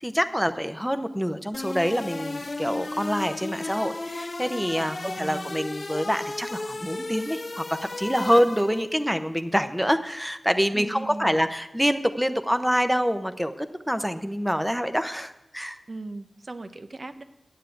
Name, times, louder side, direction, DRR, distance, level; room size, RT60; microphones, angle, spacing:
voice 1, 0.0-7.6 8.0-15.8, equal, 5° right, 9 dB, 0.8 m, -26 dB
sound 1, 1.5-9.0, left 2 dB, 50° left, 0.9 m, -34 dB
voice 2, 4.8-5.6 10.7-11.4 15.9-17.2, right 2 dB, 55° right, 11 dB, 0.8 m, -38 dB
9.9 x 7.5 x 9.2 m, 0.92 s
cardioid pair, 45°, 0 cm